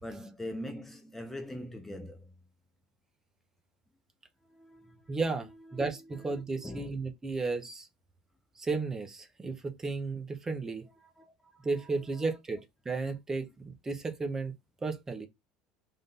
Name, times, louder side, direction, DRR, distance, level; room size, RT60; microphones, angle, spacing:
voice 1, 0.0-2.3 4.5-5.2 5.6-6.9 11.0-12.4, left 1 dB, 10° left, 0.6 m, -44 dB
voice 2, 5.1-7.9 8.6-10.9 11.6-14.5 14.8-15.3, right 3 dB, 20° right, 0.9 m, -34 dB
3.7 x 2.6 x 3.6 m
supercardioid pair, 100°, 3 cm